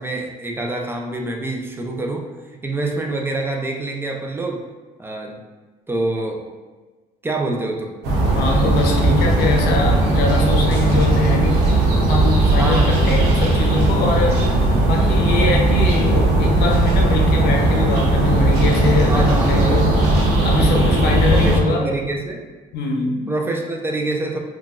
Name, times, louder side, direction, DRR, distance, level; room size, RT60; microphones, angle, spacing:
voice 1, 0.0-2.3 2.6-4.6 5.0-5.4 5.9-6.4 7.2-8.0 12.6-13.0 19.1-19.8 20.6-22.4 23.3-24.4, right 2 dB, 15° right, 2 dB, 0.4 m, -26 dB
sound 1, 8.0-21.6, right 2 dB, 85° right, 0.8 m, -17 dB
voice 2, 8.3-14.4 14.8-20.0 20.4-21.8 22.7-23.3, left 3 dB, 70° left, 1 dB, 0.6 m, -23 dB
3.7 x 2.3 x 2.4 m, 1.3 s
cardioid pair, 110°, 17 cm